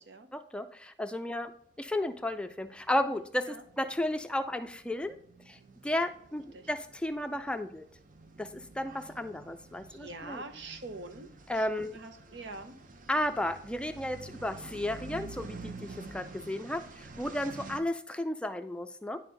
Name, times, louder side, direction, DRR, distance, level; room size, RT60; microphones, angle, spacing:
voice 1, 0.3-1.5 1.8-5.2 5.5-7.8 8.4-10.4 11.5-11.9 13.1-19.2, left 1 dB, 5° left, 8 dB, 0.4 m, -33 dB
sound 1, 2.3-2.4 2.7-17.8, right 3 dB, 50° right, 0.6 m, -49 dB
voice 2, 9.8-12.8, right 2 dB, 85° right, 8 dB, 0.9 m, -45 dB
9.8 x 4.3 x 3.9 m, 0.63 s
head